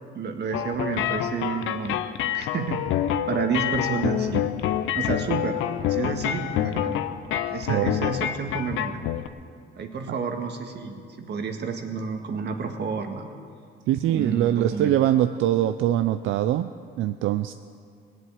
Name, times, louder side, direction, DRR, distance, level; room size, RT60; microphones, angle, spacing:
voice 1, 0.1-2.8 3.3-4.5 4.9-5.6 5.9-7.0 7.5-9.0 9.7-13.2 14.1-15.1, right 5 dB, 60° right, 4 dB, 1.7 m, -30 dB
sound 1, 0.5-9.3, left 11 dB, 90° left, 0.6 m, -27 dB
voice 2, 7.7-8.0 10.1-10.2 13.9-16.7 17.0-17.5, right 12 dB, 85° right, 9 dB, 0.5 m, -23 dB
19.0 x 7.7 x 8.8 m, 2.2 s
cardioid pair, 90°, 20 cm